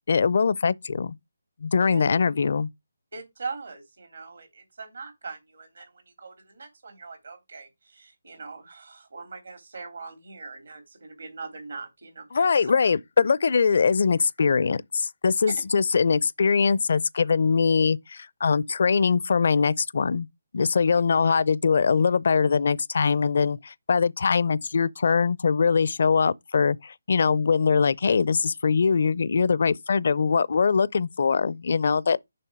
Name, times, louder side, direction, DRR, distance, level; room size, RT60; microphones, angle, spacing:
voice 1, 0.1-1.2 1.6-2.7 12.3-20.3 20.5-32.2, left 5 dB, 60° left, 0.5 m, -22 dB
voice 2, 1.8-2.1 3.1-12.5 15.5-15.6, right 4 dB, 75° right, 3.4 m, -41 dB
6.9 x 5.6 x 4.8 m
figure-of-eight pair, 155°, 0 cm